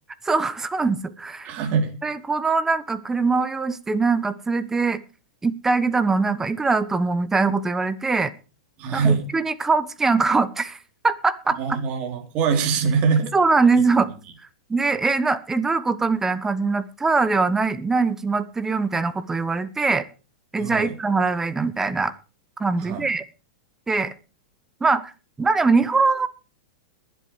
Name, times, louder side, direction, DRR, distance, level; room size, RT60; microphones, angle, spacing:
voice 1, 0.2-1.5 2.0-5.0 5.4-8.3 8.9-10.8 11.0-11.8 13.3-14.1 14.7-20.1 20.5-22.1 22.6-23.2 23.9-24.1 24.8-25.1 25.4-26.3, right 4 dB, 15° right, 15 dB, 1.0 m, -22 dB
voice 2, 1.4-2.0 8.8-9.3 11.6-13.3 20.6-20.9 22.8-23.1, right 5 dB, 40° right, 4 dB, 3.6 m, -23 dB
21.5 x 8.0 x 4.7 m, 0.33 s
hypercardioid pair, 105°, 3 cm